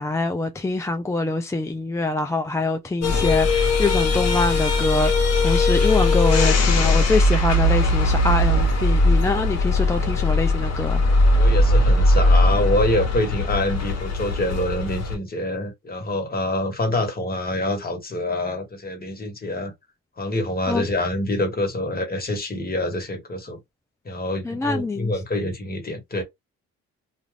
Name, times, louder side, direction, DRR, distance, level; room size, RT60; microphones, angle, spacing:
voice 1, 0.0-11.0 20.7-20.9 24.4-25.1, left 2 dB, 10° left, 0.3 m, -24 dB
sound 1, 3.0-15.2, left 2 dB, 55° left, 1.0 m, -19 dB
voice 2, 11.3-19.7 20.2-23.6 24.0-26.2, left 1 dB, 30° left, 1.4 m, -26 dB
2.5 x 2.4 x 3.3 m
cardioid pair, 90°, 30 cm